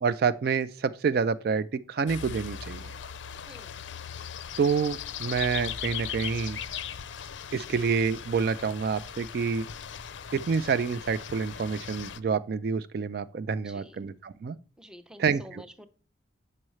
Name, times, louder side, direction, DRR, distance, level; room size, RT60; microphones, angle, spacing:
voice 1, 0.0-2.9 4.6-6.6 7.5-9.7 10.3-14.6 15.2-15.4, right 5 dB, 55° right, 0.3 m, -28 dB
sound 1, 2.1-12.2, left 8 dB, 75° left, 0.5 m, -39 dB
voice 2, 3.5-3.8 13.6-14.0 14.8-15.9, equal, 5° right, 0.5 m, -49 dB
7.5 x 5.5 x 3.1 m
head